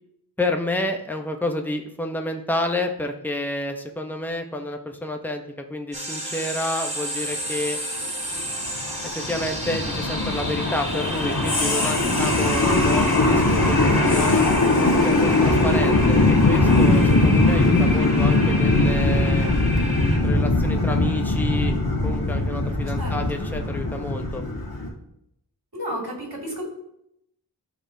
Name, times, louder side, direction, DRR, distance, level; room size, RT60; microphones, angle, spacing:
voice 1, 0.4-7.8 9.0-14.5 14.8-19.5 20.2-21.7 22.0-24.4, left 1 dB, 5° left, 3 dB, 0.8 m, -29 dB
sound 1, 5.9-20.2, equal, 15° right, 2.0 m, -32 dB
sound 2, 8.4-24.9, left 2 dB, 55° left, 1.6 m, -20 dB
voice 2, 23.0-23.4 25.7-26.6, equal, 60° right, -2 dB, 2.5 m, -32 dB
12.0 x 4.1 x 2.8 m, 0.80 s
wide cardioid pair, 40°, 42 cm